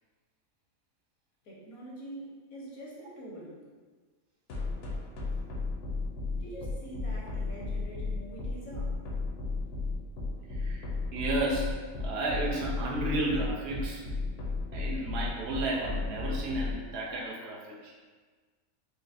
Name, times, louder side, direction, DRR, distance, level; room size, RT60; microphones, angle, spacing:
voice 1, 1.4-3.6 6.3-9.0, right 1 dB, 80° left, -4 dB, 1.2 m, -44 dB
sound 1, 4.5-16.7, left 3 dB, 65° left, 0.9 m, -33 dB
voice 2, 10.5-14.0 14.7-17.9, right 2 dB, 55° right, -4 dB, 0.8 m, -33 dB
4.1 x 2.1 x 2.5 m, 1.4 s
omnidirectional pair, 1.5 m